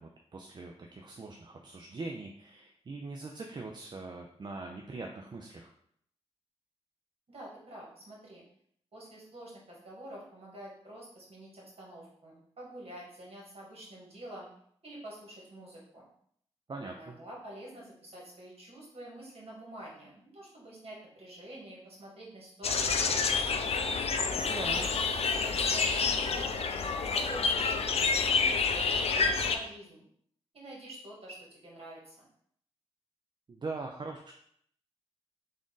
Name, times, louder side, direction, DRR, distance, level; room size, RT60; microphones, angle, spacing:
voice 1, 0.0-5.7 16.7-17.2 24.3-24.9 33.5-34.3, right 3 dB, 40° right, 2 dB, 0.4 m, -42 dB
voice 2, 7.3-8.4 8.9-14.5 14.8-16.1 16.8-23.7 24.6-24.8 25.1-26.7 27.1-30.0 30.5-32.2, right 1 dB, 60° right, -3 dB, 1.6 m, -47 dB
sound 1, 22.6-29.6, left 5 dB, 60° left, 0.4 m, -28 dB
3.6 x 2.5 x 3.8 m, 0.67 s
cardioid pair, 60°, 11 cm